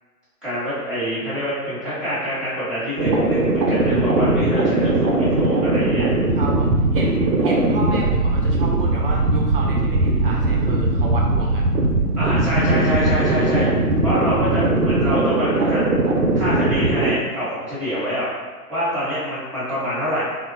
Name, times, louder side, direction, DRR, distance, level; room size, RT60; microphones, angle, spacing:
voice 1, 0.4-6.1 12.2-13.7 14.0-15.8 16.3-18.3 18.7-20.2, equal, ahead, -12 dB, 0.9 m, -26 dB
sound 1, 3.0-17.1, right 2 dB, 90° right, 0.7 m, -19 dB
voice 2, 4.4-4.8 6.3-11.7, right 2 dB, 35° right, -2 dB, 0.5 m, -32 dB
3.4 x 2.1 x 2.5 m, 1.4 s
figure-of-eight pair, 135°, 48 cm